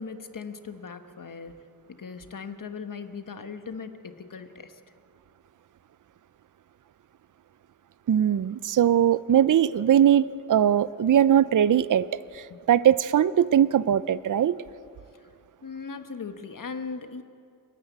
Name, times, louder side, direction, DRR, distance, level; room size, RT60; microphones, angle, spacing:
voice 1, 0.0-4.8 12.5-12.6 15.6-17.2, left 5 dB, 60° left, 8 dB, 1.3 m, -39 dB
voice 2, 8.1-14.6, right 10 dB, 60° right, 17 dB, 0.5 m, -21 dB
29.5 x 10.0 x 9.5 m, 2.5 s
wide cardioid pair, 90°, 36 cm